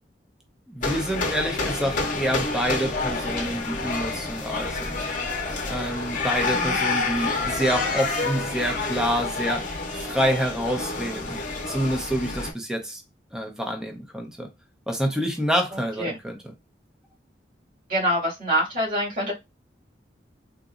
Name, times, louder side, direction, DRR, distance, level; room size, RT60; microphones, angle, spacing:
voice 1, 0.7-5.1 5.7-11.4 11.7-13.0 13.3-14.5 14.9-16.5, equal, 5° right, 0.6 m, -27 dB
sound 1, 0.8-12.5, left 3 dB, 45° left, 0.8 m, -28 dB
voice 2, 6.4-6.8 16.0-16.2 17.9-19.4, equal, 50° right, 1.9 m, -25 dB
3.8 x 2.6 x 2.4 m
head